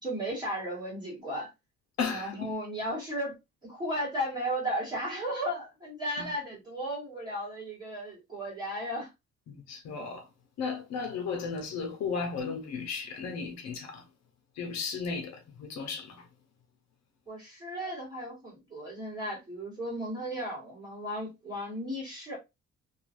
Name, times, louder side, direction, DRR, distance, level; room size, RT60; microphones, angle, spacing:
voice 1, 0.0-1.5 2.1-9.1 17.3-22.4, equal, 15° right, 1.5 m, -35 dB
voice 2, 2.0-2.5 6.2-6.3 9.5-10.3 10.6-14.1 14.5-16.3, left 5 dB, 60° left, 0.8 m, -35 dB
3.1 x 2.4 x 2.5 m
cardioid pair, 175°, 29 cm